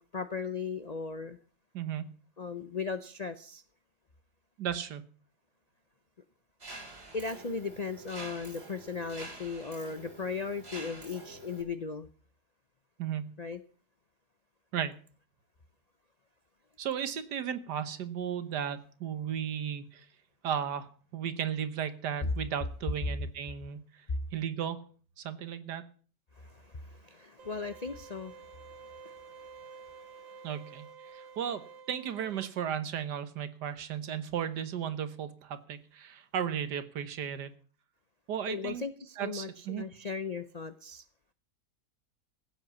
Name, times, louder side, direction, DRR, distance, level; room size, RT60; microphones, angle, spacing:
voice 1, 0.0-1.4 2.4-3.6 7.1-12.1 13.4-13.6 22.2-22.3 26.4-30.5 38.5-41.0, left 5 dB, 60° left, 11 dB, 0.4 m, -38 dB
voice 2, 1.7-2.1 4.6-5.0 13.0-13.3 14.7-14.9 16.8-20.0 20.4-24.0 24.3-24.8 25.2-25.8 30.4-30.9 31.1-37.5 38.3-38.8 39.2-39.9, right 9 dB, 75° right, 12 dB, 1.7 m, -35 dB
Mechanisms, 6.6-11.6, right 2 dB, 40° right, 2.8 m, -47 dB
sound 1, 27.4-32.5, right 6 dB, 55° right, 1.4 m, -50 dB
16.0 x 8.0 x 7.1 m, 0.42 s
omnidirectional pair, 1.8 m